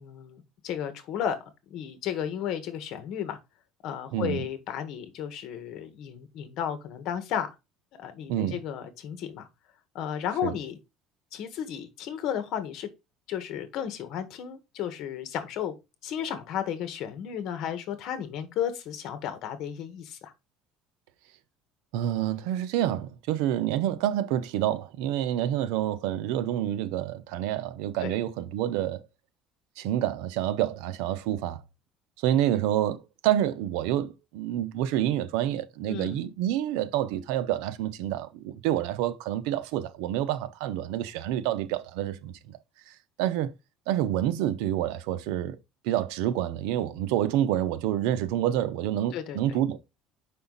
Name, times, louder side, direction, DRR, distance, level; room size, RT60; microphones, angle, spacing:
voice 1, 0.0-1.4 1.7-3.4 3.8-7.5 7.9-9.5 9.9-10.8 11.3-12.9 13.3-15.7 16.0-20.3 28.0-28.1 35.9-36.2 49.1-49.4, left 9 dB, 60° left, 1.6 m, -33 dB
voice 2, 4.1-4.4 8.3-8.6 10.4-10.5 21.9-29.0 29.8-31.6 32.2-42.6 42.9-43.5 43.9-45.6 45.8-49.8, right 12 dB, 90° right, 0.8 m, -28 dB
6.8 x 5.6 x 4.1 m
cardioid pair, 140°, 0 cm